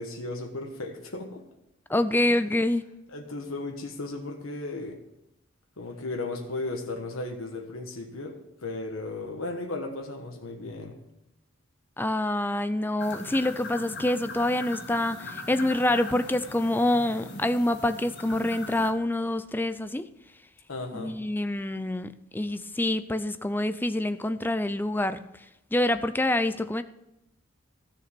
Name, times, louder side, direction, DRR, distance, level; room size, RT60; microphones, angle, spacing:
voice 1, 0.0-1.4 2.3-2.4 3.1-5.0 5.8-11.0 20.7-21.1, left 2 dB, 90° left, 3 dB, 1.4 m, -35 dB
voice 2, 1.9-2.8 12.0-20.1 20.9-25.2 25.7-26.8, left 1 dB, 10° left, 12 dB, 0.5 m, -26 dB
sound 1, 13.0-18.9, left 3 dB, 55° left, 1.9 m, -40 dB
13.5 x 6.8 x 6.1 m, 0.88 s
head